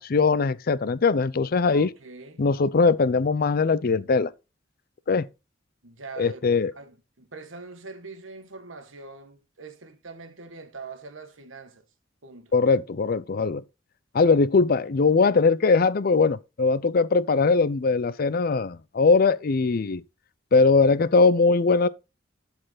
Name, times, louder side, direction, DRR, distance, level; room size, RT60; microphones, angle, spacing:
voice 1, 0.0-1.9 2.4-4.3 5.1-5.3 6.2-6.7 12.5-13.6 14.1-20.0 20.5-21.9, left 4 dB, 50° left, 0.5 m, -21 dB
voice 2, 1.7-2.4 5.8-6.4 6.7-11.8 12.2-12.5, right 4 dB, 90° right, 1.3 m, -43 dB
12.5 x 4.4 x 3.9 m
head